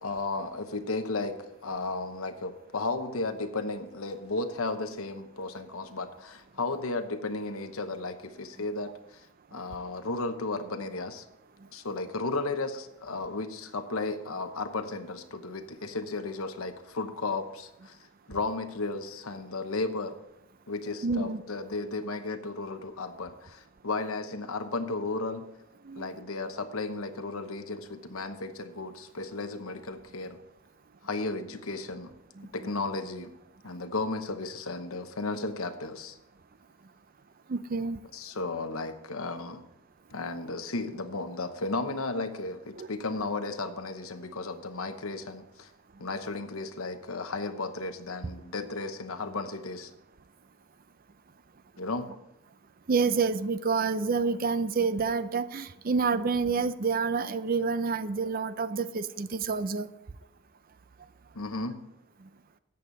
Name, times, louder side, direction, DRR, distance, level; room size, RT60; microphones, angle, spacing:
voice 1, 0.0-9.2 9.5-11.2 11.7-18.0 18.3-20.2 20.7-25.4 26.0-30.4 31.0-32.1 32.5-33.3 33.6-36.2 38.1-39.6 40.1-45.7 46.0-49.9 51.8-52.1 61.3-61.8, left 3 dB, 80° left, 8 dB, 1.0 m, -34 dB
voice 2, 21.0-21.4 25.8-26.1 32.4-32.5 37.5-38.0 42.8-42.9 52.9-59.9, right 4 dB, 40° right, 14 dB, 0.5 m, -28 dB
13.5 x 8.6 x 4.0 m, 0.86 s
head